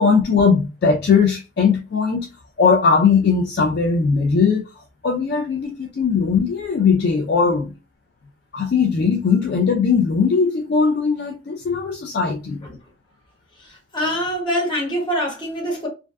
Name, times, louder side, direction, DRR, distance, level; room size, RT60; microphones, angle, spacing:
voice 1, 0.0-2.3 2.6-4.7 5.0-7.7 8.5-12.6, left 5 dB, 55° left, 0.3 m, -19 dB
voice 2, 13.6-15.9, equal, 25° left, 0.9 m, -25 dB
2.5 x 2.1 x 2.3 m
head